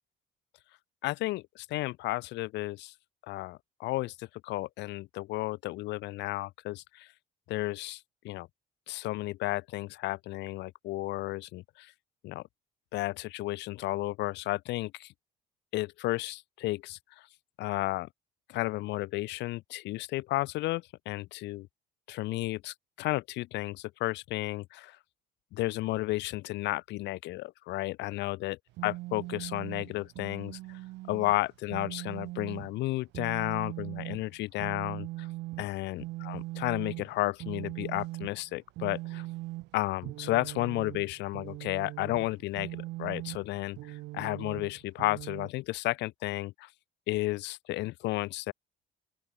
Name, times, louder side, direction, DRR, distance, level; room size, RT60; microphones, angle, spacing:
voice 1, 1.0-2.9 3.3-7.1 7.5-8.5 8.9-11.9 12.2-12.4 12.9-15.1 15.7-17.0 17.6-18.1 18.5-21.7 22.1-25.0 25.5-28.6 28.8-30.6 31.1-35.3 35.6-39.3 39.7-46.7 47.1-48.5, left 18 dB, 80° left, 4.1 m, -33 dB
sound 1, 28.7-45.5, right 19 dB, 90° right, 4.3 m, -40 dB
open air
cardioid pair, 150°, 18 cm